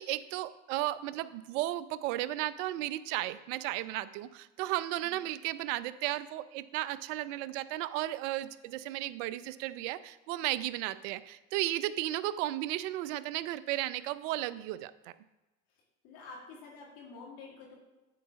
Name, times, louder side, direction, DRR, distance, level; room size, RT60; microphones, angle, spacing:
voice 1, 0.0-14.9, right 15 dB, 65° right, 15 dB, 0.6 m, -34 dB
voice 2, 16.0-17.8, left 4 dB, 55° left, -2 dB, 2.2 m, -49 dB
8.4 x 4.7 x 5.9 m, 1.1 s
hypercardioid pair, 75°, 40 cm